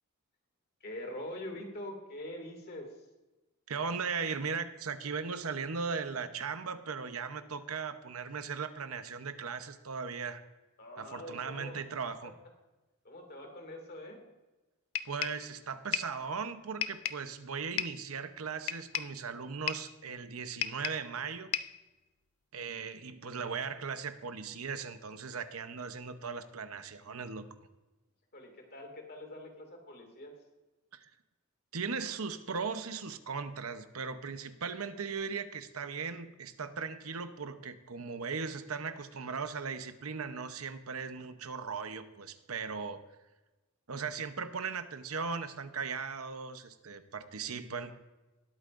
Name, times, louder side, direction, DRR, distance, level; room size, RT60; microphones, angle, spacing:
voice 1, 0.8-2.9 10.8-11.8 12.2-12.3 13.0-14.2 28.3-30.3, left 1 dB, 45° left, 3 dB, 2.3 m, -44 dB
voice 2, 3.7-10.4 11.0-12.3 15.0-21.5 22.5-27.5 30.9-31.1 31.7-43.0 43.9-48.0, right 5 dB, 85° right, 10 dB, 0.8 m, -38 dB
sound 1, 14.9-15.5 15.9-16.2 16.8-17.3 17.8-18.1 18.7-19.2 19.7-19.9 20.6-21.1 21.5-21.8, left 10 dB, 70° left, 0.4 m, -35 dB
19.5 x 8.4 x 2.6 m, 1.1 s
head